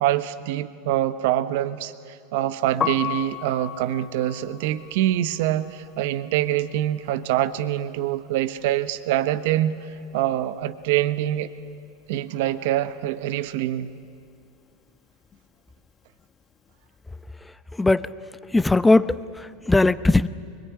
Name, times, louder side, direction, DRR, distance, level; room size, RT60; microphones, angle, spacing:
voice 1, 0.0-9.8 10.1-11.5 12.1-13.9, right 13 dB, 70° right, 12 dB, 1.2 m, -25 dB
Piano, 2.7-8.6 8.9-10.5 10.7-17.2, left 9 dB, 30° left, 1.2 m, -36 dB
voice 2, 17.8-18.1 18.5-20.3, left 2 dB, 10° left, 15 dB, 0.8 m, -19 dB
24.0 x 21.5 x 9.6 m, 2.4 s
hypercardioid pair, 105°, 0 cm